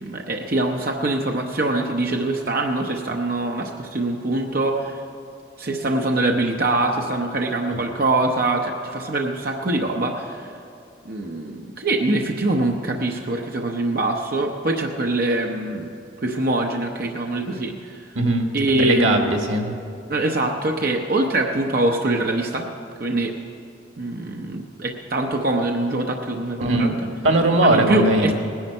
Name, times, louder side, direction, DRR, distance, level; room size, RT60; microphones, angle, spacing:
voice 1, 0.0-5.0 5.6-10.5 11.0-15.9 16.2-18.1 18.5-19.4 20.1-22.7 23.0-23.3 24.0-27.0 27.6-28.3, right 2 dB, 50° right, 1 dB, 0.8 m, -23 dB
voice 2, 18.1-19.7 26.6-26.9 27.2-28.3, right 1 dB, 90° right, 3 dB, 1.6 m, -19 dB
19.0 x 10.5 x 5.5 m, 2.4 s
head